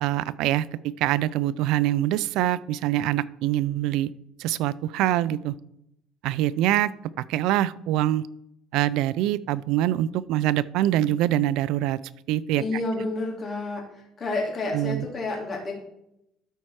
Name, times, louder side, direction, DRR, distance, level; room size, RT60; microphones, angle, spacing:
voice 1, 0.0-4.1 4.4-5.5 6.2-6.9 7.3-8.3 8.7-12.0 12.3-12.6 14.7-15.1, right 13 dB, 70° right, 18 dB, 0.3 m, -24 dB
voice 2, 12.6-15.7, left 2 dB, 30° left, -1 dB, 2.7 m, -30 dB
12.5 x 4.4 x 4.8 m, 0.79 s
cardioid pair, 155°, 0 cm